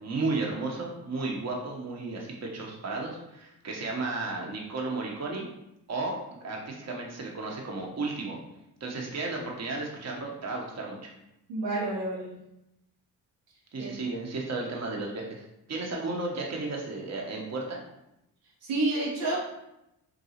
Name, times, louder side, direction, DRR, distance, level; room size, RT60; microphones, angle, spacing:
voice 1, 0.0-5.4 5.9-8.4 8.8-11.1 13.7-17.8, right 3 dB, 35° right, -1 dB, 0.8 m, -33 dB
voice 2, 11.5-12.3 13.8-13.9 18.6-19.4, right 2 dB, 85° right, -6 dB, 0.9 m, -29 dB
3.7 x 2.3 x 2.8 m, 0.86 s
supercardioid pair, 50°, 45 cm